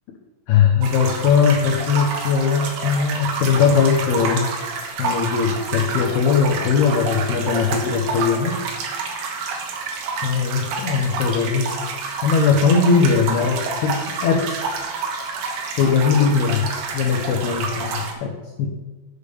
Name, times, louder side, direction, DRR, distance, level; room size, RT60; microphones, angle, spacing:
voice 1, 0.5-4.5 5.0-8.6 10.2-11.7 12.2-14.6 15.7-16.6 16.9-18.7, left 5 dB, 75° left, 1 dB, 2.4 m, -19 dB
sound 1, 0.8-18.1, right 4 dB, 65° right, 2.9 m, -28 dB
8.8 x 6.7 x 6.9 m, 1.2 s
omnidirectional pair, 5.6 m